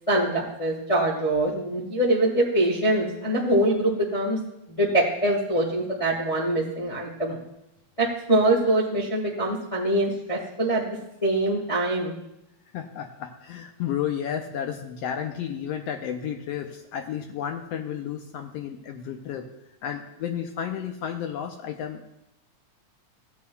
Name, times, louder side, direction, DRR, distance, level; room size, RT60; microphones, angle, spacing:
voice 1, 0.1-7.4 8.0-10.9 11.2-12.1, right 1 dB, 35° left, -4 dB, 0.5 m, -24 dB
voice 2, 12.7-19.5 19.8-22.1, left 9 dB, 80° left, 4 dB, 1.4 m, -32 dB
16.0 x 8.4 x 2.3 m, 0.86 s
omnidirectional pair, 3.5 m